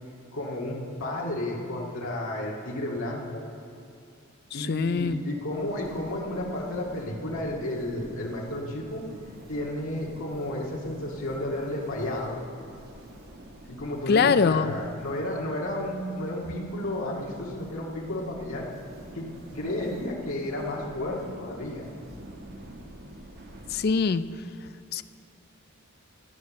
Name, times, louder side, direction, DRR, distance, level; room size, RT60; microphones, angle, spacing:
voice 1, 0.3-3.4 4.5-9.0 9.5-12.3 13.7-18.7 19.1-19.3 19.5-21.9, left 1 dB, 80° left, -3 dB, 2.0 m, -32 dB
voice 2, 4.6-5.2 14.1-14.7 23.7-24.3 24.9-25.0, left 5 dB, 50° left, 13 dB, 0.4 m, -23 dB
sound 1, 5.5-24.0, right 1 dB, 50° right, 1.2 m, -47 dB
14.5 x 9.6 x 6.4 m, 2.4 s
head